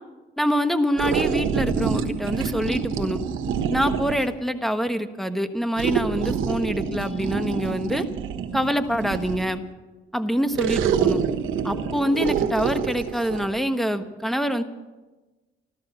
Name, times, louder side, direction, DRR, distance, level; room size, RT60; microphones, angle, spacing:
voice 1, 0.4-3.2 3.7-8.0 8.5-9.6 10.1-11.2 11.6-14.6, equal, ahead, 9 dB, 1.2 m, -25 dB
sound 1, 1.0-4.3 5.8-9.6 10.5-13.5, right 7 dB, 85° right, 1.3 m, -26 dB
14.5 x 13.0 x 7.1 m, 1.2 s
cardioid pair, 90°, 20 cm